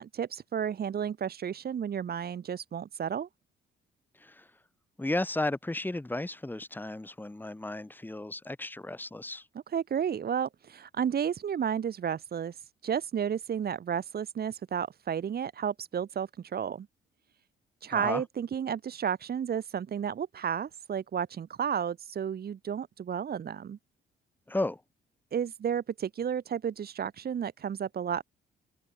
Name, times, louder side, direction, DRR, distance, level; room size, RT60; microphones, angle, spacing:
voice 1, 0.0-3.3 9.7-16.9 17.8-23.8 25.3-28.2, right 8 dB, 50° right, 2.0 m, -32 dB
voice 2, 5.0-9.5 17.9-18.2 24.5-24.8, left 2 dB, 10° left, 2.2 m, -34 dB
open air
cardioid pair, 90°, 20 cm